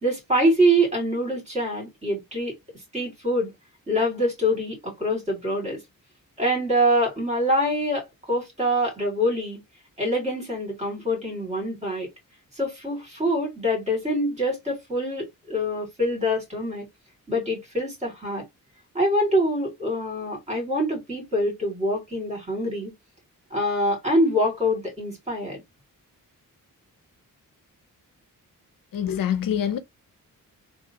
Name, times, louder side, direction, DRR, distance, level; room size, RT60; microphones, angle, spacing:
voice 1, 0.0-2.5 2.9-3.5 3.9-5.8 6.4-9.6 10.0-12.1 12.6-16.8 17.3-18.4 18.9-22.9 23.5-25.6, equal, 20° right, 2.4 m, -25 dB
voice 2, 28.9-29.8, left 9 dB, 70° left, 0.6 m, -25 dB
3.6 x 2.4 x 2.7 m
wide cardioid pair, 150°, 34 cm